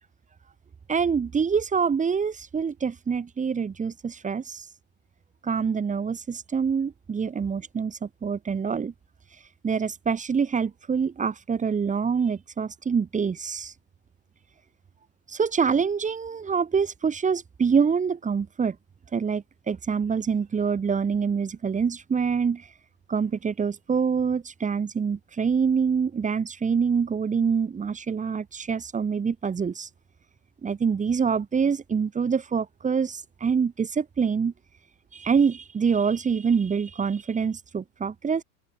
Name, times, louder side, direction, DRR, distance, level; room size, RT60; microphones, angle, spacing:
voice 1, 0.9-4.7 5.4-8.9 9.6-13.7 15.3-18.8 19.1-22.7 23.1-29.9 30.6-34.5 35.1-38.4, right 6 dB, 20° right, 1.7 m, -25 dB
open air
hypercardioid pair, 105°, 41 cm